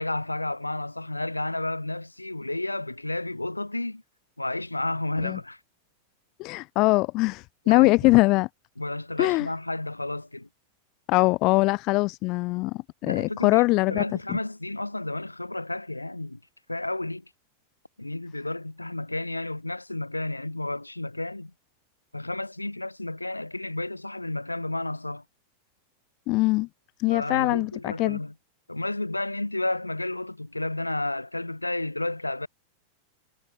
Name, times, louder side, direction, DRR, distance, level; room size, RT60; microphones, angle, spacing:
voice 1, 0.0-4.0 4.4-5.6 7.7-8.1 8.8-10.5 13.0-16.4 16.7-17.2 18.0-21.5 22.1-25.2 27.1-28.3 28.7-32.5, left 2 dB, 85° left, 2.0 m, -31 dB
voice 2, 6.4-8.5 9.2-9.5 11.1-14.0 14.3-14.4 26.3-26.7 27.0-28.2, left 22 dB, 40° left, 0.7 m, -22 dB
figure-of-eight pair, 90°, 0 cm